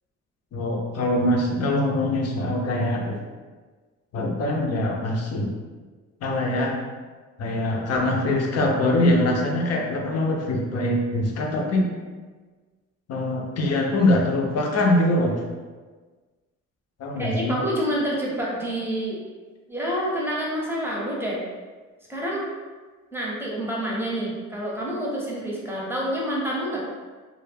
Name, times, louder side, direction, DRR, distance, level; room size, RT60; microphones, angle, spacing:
voice 1, 0.5-3.2 4.1-5.5 6.2-6.8 7.4-11.9 13.1-15.3 17.0-17.6, left 1 dB, 55° left, 0 dB, 0.6 m, -23 dB
voice 2, 17.2-19.2 19.7-21.4 22.1-22.5 23.1-26.8, equal, 10° right, -4 dB, 0.7 m, -28 dB
2.1 x 2.0 x 3.3 m, 1.4 s
cardioid pair, 90°, 30 cm